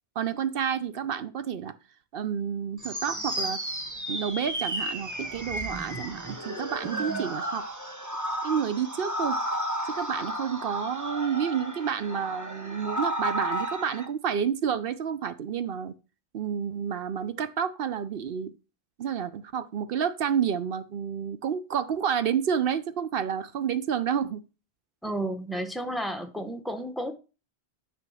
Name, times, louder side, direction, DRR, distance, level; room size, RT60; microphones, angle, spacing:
voice 1, 0.2-1.7 2.1-3.6 4.1-7.6 8.4-9.4 9.9-15.9 16.3-18.5 19.0-24.4, right 8 dB, 65° right, 13 dB, 0.8 m, -29 dB
sound 1, 2.8-14.1, equal, 20° right, 1.1 m, -33 dB
voice 2, 6.8-7.3 25.0-27.1, right 1 dB, ahead, 6 dB, 0.7 m, -33 dB
9.6 x 3.5 x 6.2 m, 0.32 s
omnidirectional pair, 1.1 m